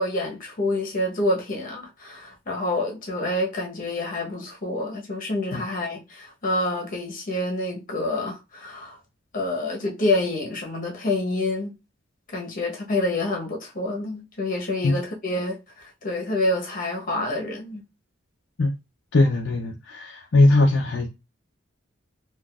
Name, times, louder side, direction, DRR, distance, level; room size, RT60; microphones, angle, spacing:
voice 1, 0.0-9.0 9.3-11.7 12.3-17.8, left 2 dB, 45° left, 1.0 m, -27 dB
voice 2, 19.1-21.1, left 2 dB, 60° left, 0.5 m, -20 dB
3.9 x 2.5 x 2.4 m
head